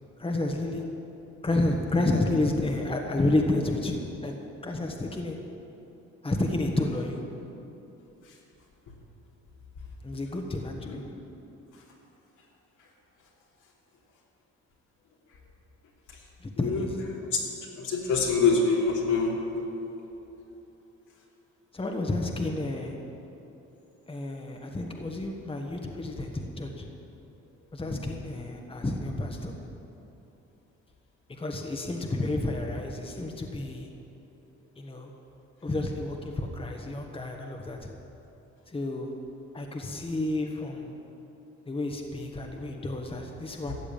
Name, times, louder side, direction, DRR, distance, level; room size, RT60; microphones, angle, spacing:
voice 1, 0.2-0.8 1.4-4.3 4.6-5.4 6.2-7.2 10.0-11.0 16.4-17.0 21.7-23.0 24.1-26.9 27.7-29.5 31.3-33.9 34.8-35.1 35.6-37.9 38.7-39.1 39.5-41.0 41.7-43.7, left 2 dB, 20° left, 2 dB, 1.4 m, -30 dB
voice 2, 17.8-19.4 43.7-43.8, left 4 dB, 80° left, -3 dB, 3.1 m, -24 dB
14.0 x 7.5 x 8.9 m, 3.0 s
cardioid pair, 90°, 30 cm